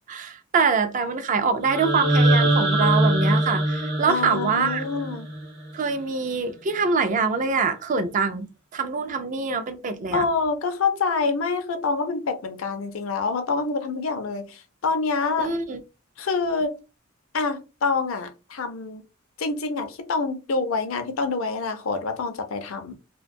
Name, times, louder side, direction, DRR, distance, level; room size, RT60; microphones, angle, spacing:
voice 1, 0.1-4.8 5.7-10.2 15.4-15.8, right 5 dB, 35° right, 0.3 m, -24 dB
sound 1, 1.6-5.7, right 1 dB, 50° right, 0.8 m, -22 dB
voice 2, 4.1-5.3 10.1-15.5 16.2-16.8 17.3-19.0 19.4-22.9, left 4 dB, 70° left, 0.5 m, -26 dB
2.5 x 2.2 x 2.5 m
head